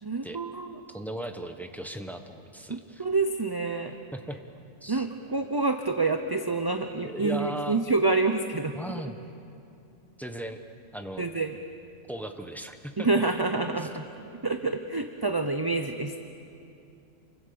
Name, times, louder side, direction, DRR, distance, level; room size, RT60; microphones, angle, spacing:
voice 1, 0.0-0.8 2.7-4.0 4.9-8.7 11.2-11.6 13.0-14.0 14.4-16.2, right 3 dB, 20° right, 6 dB, 0.8 m, -27 dB
voice 2, 0.9-3.0 4.1-4.4 4.8-5.1 6.9-7.8 8.7-9.1 10.2-10.6 10.9-11.3 12.1-13.1 13.8-13.9, right 1 dB, ahead, 6 dB, 1.2 m, -37 dB
28.0 x 24.0 x 7.0 m, 2.7 s
omnidirectional pair, 1.3 m